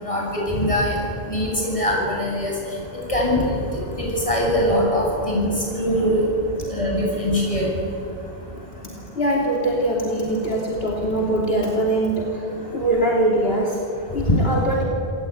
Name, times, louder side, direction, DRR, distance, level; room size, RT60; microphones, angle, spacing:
voice 1, 0.0-1.0 1.3-2.5 3.1-3.6 4.1-6.3 6.7-7.7, equal, 30° left, -2 dB, 8.2 m, -22 dB
voice 2, 9.1-12.4 12.7-13.8 14.1-14.8, right 1 dB, 70° left, -1 dB, 3.4 m, -22 dB
27.0 x 18.5 x 9.4 m, 2.9 s
omnidirectional pair, 1.0 m